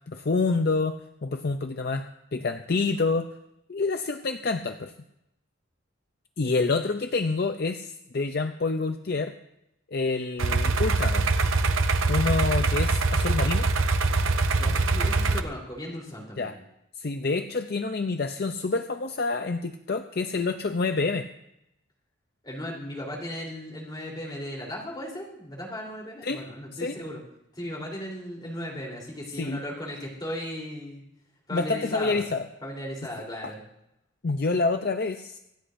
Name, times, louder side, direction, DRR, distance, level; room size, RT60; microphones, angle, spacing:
voice 1, 0.1-3.3 3.7-4.9 6.4-9.3 9.9-11.3 12.1-13.7 16.4-16.5 17.0-21.3 26.2-26.4 26.8-26.9 29.3-29.6 31.5-32.5 34.2-35.4, left 3 dB, 50° left, 6 dB, 0.5 m, -27 dB
sound 1, 10.4-15.4, right 3 dB, 85° right, 0.8 m, -23 dB
voice 2, 14.6-16.6 22.4-27.2 27.5-31.0 31.5-32.2 32.6-33.6, equal, 20° left, -3 dB, 3.5 m, -36 dB
26.0 x 9.7 x 2.6 m, 0.83 s
head